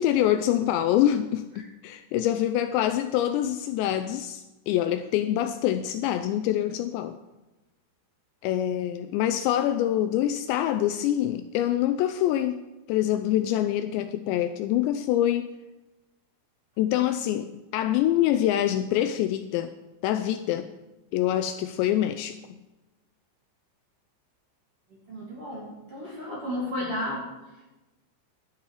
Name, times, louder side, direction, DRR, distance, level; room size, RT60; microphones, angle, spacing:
voice 1, 0.0-7.2 8.4-12.6 12.9-15.5 16.8-19.7 20.0-20.7 21.1-22.4, left 12 dB, 85° left, 9 dB, 2.6 m, -25 dB
voice 2, 25.1-27.2, left 1 dB, 35° right, -4 dB, 2.9 m, -33 dB
12.0 x 9.7 x 4.8 m, 1.1 s
omnidirectional pair, 5.4 m